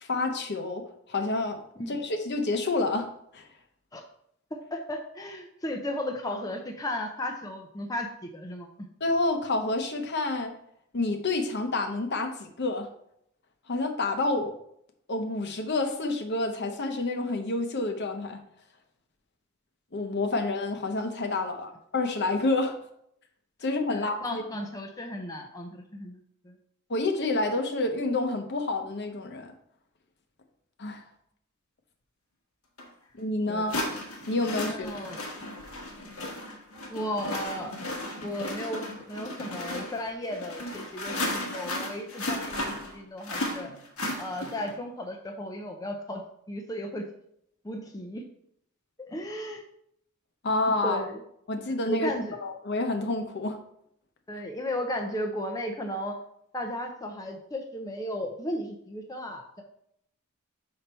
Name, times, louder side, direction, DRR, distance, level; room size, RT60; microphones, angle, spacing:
voice 1, 0.0-1.6 1.9-3.1 3.3-3.5 9.0-10.5 10.9-12.9 13.7-14.6 15.1-18.4 19.9-22.8 23.6-24.4 26.9-29.5 30.8-31.0 33.2-33.8 34.3-34.9 50.4-51.0 51.5-52.1 52.4-53.6, left 2 dB, 55° left, 6 dB, 0.9 m, -28 dB
voice 2, 4.5-8.1 8.3-8.9 23.9-26.2 26.4-26.6 33.5-33.7 34.7-35.2 36.5-36.6 36.9-37.8 38.2-43.7 44.2-46.2 46.5-47.0 47.6-48.2 49.0-49.6 50.8-51.2 51.9-52.4 54.3-56.2 56.5-59.6, left 1 dB, 15° left, 3 dB, 0.6 m, -35 dB
sound 1, 32.8-32.9 33.7-44.8, left 1 dB, 85° left, 1.4 m, -35 dB
5.7 x 5.3 x 4.3 m, 0.72 s
head